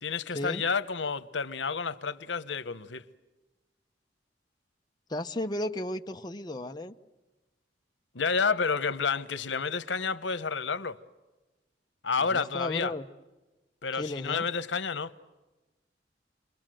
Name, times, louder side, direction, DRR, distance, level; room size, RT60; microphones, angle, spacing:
voice 1, 0.0-3.0 8.1-11.0 12.0-12.9 13.8-15.1, left 5 dB, 90° left, 1.0 m, -30 dB
voice 2, 5.1-6.9 12.3-13.1 14.0-14.4, left 1 dB, 25° left, 0.8 m, -34 dB
29.5 x 22.5 x 7.7 m
head